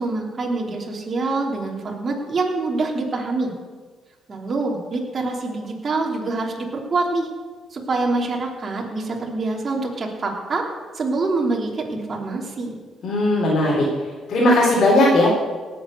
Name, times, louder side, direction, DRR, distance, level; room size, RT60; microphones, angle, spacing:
voice 1, 0.0-3.5 4.3-7.3 7.7-10.6 10.9-12.8, right 3 dB, 40° right, 0 dB, 3.1 m, -25 dB
voice 2, 13.0-13.8 14.3-15.3, left 1 dB, 60° left, -5 dB, 3.9 m, -17 dB
18.0 x 7.7 x 6.7 m, 1.4 s
cardioid pair, 90°, 0 cm